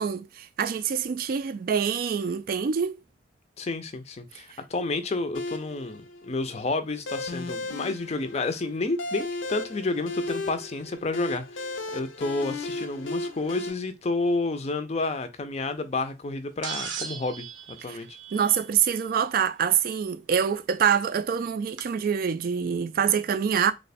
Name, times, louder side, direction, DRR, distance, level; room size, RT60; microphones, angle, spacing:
voice 1, 0.0-3.0 4.5-4.6 17.9-18.0 18.3-23.7, right 7 dB, 50° right, 0.3 m, -25 dB
voice 2, 3.6-18.2, left 3 dB, 35° left, 0.4 m, -30 dB
sound 1, 5.3-13.7, left 2 dB, 85° left, 0.6 m, -35 dB
sound 2, 16.6-18.9 20.5-20.6 21.8-21.9, right 6 dB, 90° right, 0.6 m, -37 dB
3.0 x 2.1 x 4.1 m
head